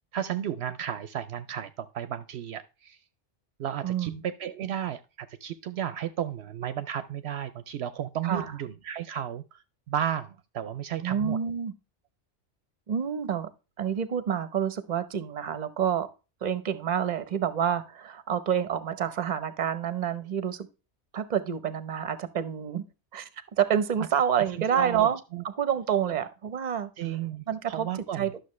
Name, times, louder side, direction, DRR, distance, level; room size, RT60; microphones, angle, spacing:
voice 1, 0.1-3.0 3.6-9.6 9.9-11.4 24.7-25.4 27.0-28.3, right 10 dB, 70° right, 0.8 m, -33 dB
voice 2, 3.8-4.2 8.2-8.6 11.0-11.7 12.9-13.5 13.8-16.1 16.4-20.7 21.1-22.8 23.1-23.3 23.6-25.2 25.4-26.9 27.5-27.9 28.1-28.4, right 8 dB, 45° right, 0.8 m, -28 dB
11.5 x 6.5 x 3.1 m
omnidirectional pair, 1.2 m